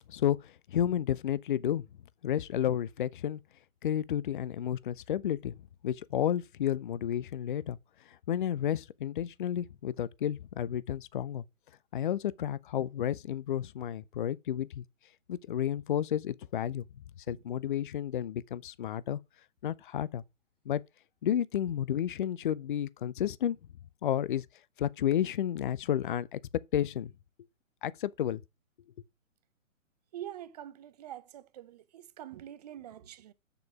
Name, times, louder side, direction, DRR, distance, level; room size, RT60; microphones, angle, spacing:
voice 1, 0.1-1.8 2.2-3.4 3.8-5.6 5.8-7.8 8.3-11.4 11.9-14.8 15.3-16.8 17.3-19.2 19.6-20.2 20.7-20.8 21.2-23.6 24.0-24.4 24.8-26.4 26.7-27.1 27.8-28.4, left 10 dB, 40° left, 0.5 m, -31 dB
voice 2, 30.1-33.3, right 11 dB, 30° right, 0.7 m, -45 dB
7.7 x 6.9 x 4.8 m
figure-of-eight pair, 130°, 40 cm